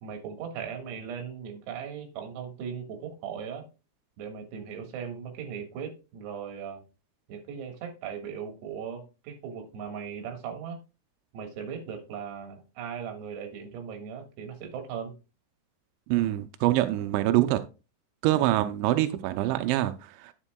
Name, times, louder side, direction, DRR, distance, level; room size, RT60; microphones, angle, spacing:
voice 1, 0.0-3.6 4.2-6.8 7.3-10.8 11.3-15.1, right 7 dB, 65° right, 3.3 m, -38 dB
voice 2, 16.1-17.6 18.2-20.3, right 15 dB, 85° right, 2.6 m, -25 dB
9.8 x 8.0 x 2.2 m
omnidirectional pair, 5.9 m